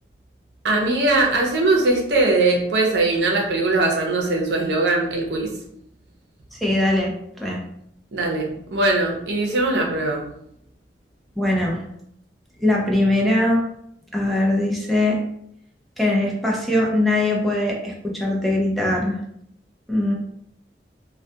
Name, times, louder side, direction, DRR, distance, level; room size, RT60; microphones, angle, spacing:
voice 1, 0.6-5.5 8.1-10.3, right 2 dB, 70° right, 0 dB, 0.6 m, -20 dB
voice 2, 6.5-7.6 11.4-11.8 12.6-13.6 14.1-15.2 16.0-19.2 19.9-20.1, left 1 dB, ahead, -3 dB, 0.4 m, -21 dB
2.3 x 2.1 x 2.6 m, 0.73 s
head